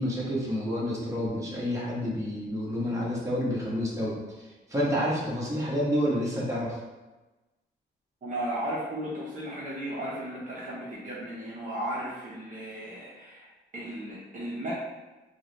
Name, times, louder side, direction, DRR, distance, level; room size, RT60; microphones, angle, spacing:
voice 1, 0.0-4.2 4.7-6.8, equal, 15° right, -5 dB, 1.1 m, -29 dB
voice 2, 8.2-13.5 13.7-14.7, right 1 dB, 40° right, -7 dB, 0.8 m, -35 dB
3.5 x 2.1 x 3.3 m, 1.1 s
cardioid pair, 90°, 20 cm